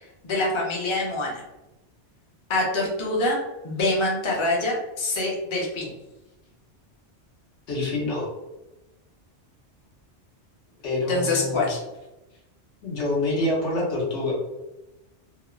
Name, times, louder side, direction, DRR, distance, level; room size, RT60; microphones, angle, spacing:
voice 1, 0.2-1.4 2.5-3.4 3.6-5.9 11.1-11.8, left 2 dB, 35° left, -3 dB, 0.5 m, -25 dB
voice 2, 7.7-8.3 10.8-11.7 12.8-14.3, left 2 dB, 85° left, -4 dB, 1.2 m, -26 dB
2.9 x 2.0 x 2.3 m, 0.99 s
omnidirectional pair, 1.2 m